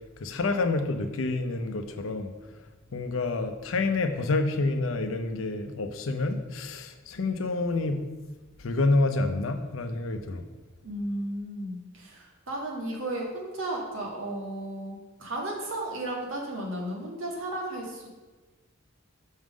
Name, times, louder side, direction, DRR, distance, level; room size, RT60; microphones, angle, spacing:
voice 1, 0.2-2.3 2.9-8.0 8.6-10.4, left 3 dB, 80° left, 8 dB, 0.6 m, -28 dB
voice 2, 10.8-18.1, right 1 dB, 75° right, -1 dB, 1.6 m, -34 dB
6.3 x 3.7 x 6.1 m, 1.2 s
head